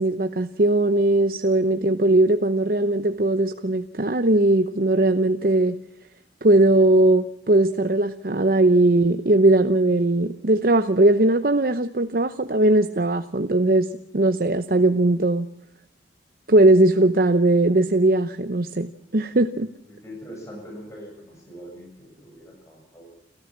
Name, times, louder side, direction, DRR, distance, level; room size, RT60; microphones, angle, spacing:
voice 1, 0.0-5.8 6.4-13.9 14.1-15.5 16.5-19.7, right 2 dB, 55° right, 9 dB, 0.9 m, -19 dB
voice 2, 19.9-23.1, equal, 15° left, -1 dB, 7.3 m, -42 dB
29.5 x 14.0 x 7.4 m, 0.79 s
head